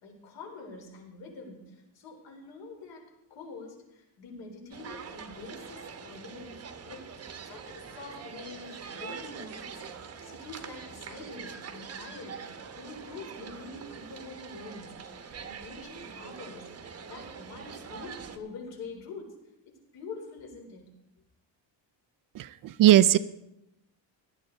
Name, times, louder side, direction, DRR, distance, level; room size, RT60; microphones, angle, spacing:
voice 1, 0.0-6.6 6.8-9.8 10.2-19.3 19.7-20.9, left 3 dB, 70° left, 1 dB, 4.1 m, -45 dB
sound 1, 4.7-18.4, right 6 dB, 30° right, 1.0 m, -44 dB
voice 2, 22.4-23.2, right 13 dB, 50° right, 13 dB, 0.4 m, -19 dB
17.5 x 12.0 x 3.9 m, 0.88 s
cardioid pair, 170°, 45 cm